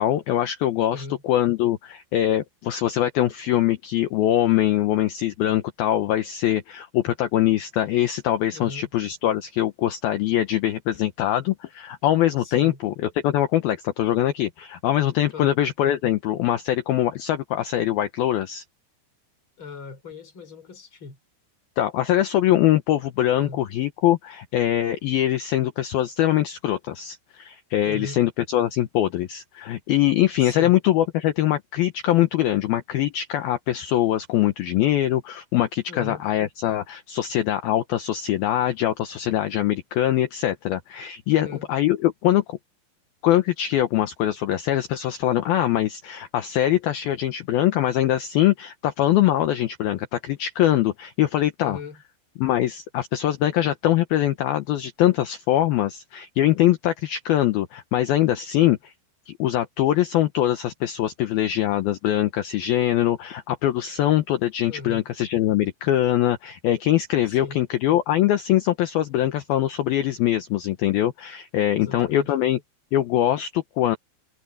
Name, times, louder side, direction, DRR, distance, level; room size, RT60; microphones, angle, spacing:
voice 1, 0.0-18.6 21.8-42.6 43.2-51.8 52.4-58.9 59.3-72.6 72.9-74.0, left 13 dB, 70° left, 2.5 m, -23 dB
voice 2, 0.9-1.2 8.5-8.9 12.4-12.8 15.3-15.6 19.6-21.2 23.3-23.6 27.8-28.2 30.4-30.8 35.9-36.2 41.3-41.7 51.6-52.0 64.7-65.1 67.3-67.6 71.7-72.3, left 4 dB, 30° left, 4.5 m, -38 dB
omnidirectional pair, 5.1 m